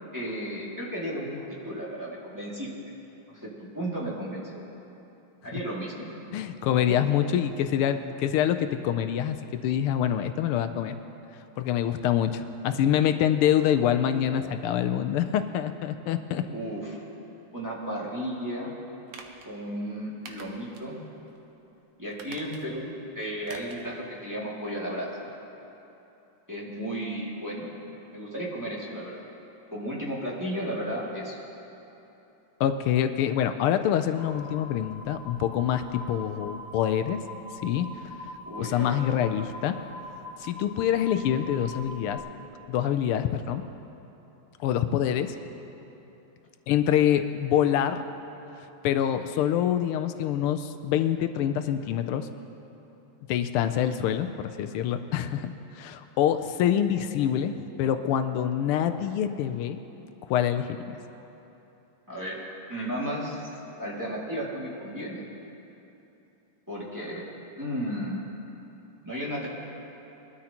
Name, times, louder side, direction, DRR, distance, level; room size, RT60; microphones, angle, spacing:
voice 1, 0.1-2.7 3.3-4.6 5.4-6.1 6.9-7.0 16.5-17.0 17.5-18.7 19.4-21.0 22.0-25.1 26.5-27.7 28.1-29.2 29.7-31.4 38.4-39.0 62.1-62.4 62.7-63.4 63.8-65.3 66.7-67.2 67.6-68.2 69.0-69.5, equal, 10° right, -6 dB, 2.1 m, -34 dB
voice 2, 6.3-10.9 11.6-16.4 32.6-37.2 37.6-37.9 38.6-39.8 40.4-42.2 42.7-43.6 44.6-45.3 46.7-48.0 48.6-52.3 53.3-59.8 60.3-60.8, left 10 dB, 85° left, 9 dB, 1.5 m, -26 dB
sound 1, 19.1-19.5 20.3-20.9 21.3-21.4 22.1-22.9 23.4-23.9 24.2-24.3, right 4 dB, 80° right, 1.9 m, -46 dB
sound 2, 34.2-42.2, left 1 dB, 65° left, 2.0 m, -43 dB
22.0 x 12.5 x 2.9 m, 3.0 s
omnidirectional pair, 2.4 m